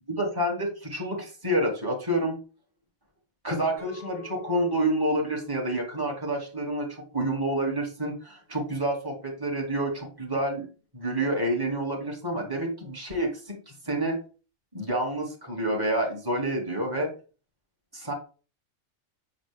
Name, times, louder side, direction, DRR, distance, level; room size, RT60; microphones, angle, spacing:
voice 1, 0.1-2.4 3.4-10.7 10.9-14.2 14.7-17.1 17.9-18.1, right 1 dB, 15° right, -1 dB, 2.6 m, -28 dB
Chink clink, 3.8-8.1 8.6-9.0, left 13 dB, 70° right, 5.5 m, -51 dB
8.7 x 6.9 x 3.6 m, 0.34 s
omnidirectional pair, 1.4 m